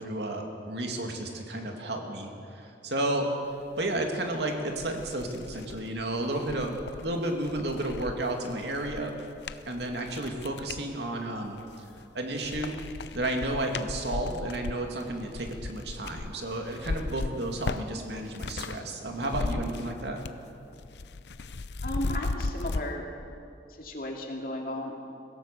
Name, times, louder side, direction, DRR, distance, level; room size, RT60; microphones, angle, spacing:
voice 1, 0.0-3.3 3.8-9.1 9.7-11.6 12.1-12.8 13.1-20.2, right 1 dB, 70° right, 2 dB, 2.5 m, -32 dB
sound 1, 4.2-4.3 4.7-10.9 11.4-12.1 12.4-18.8 19.1-20.5 20.7-22.8, left 3 dB, 70° left, 0.6 m, -36 dB
voice 2, 21.8-23.1 23.8-25.0, left 1 dB, 50° left, 1 dB, 2.7 m, -34 dB
23.5 x 17.0 x 6.9 m, 2.5 s
head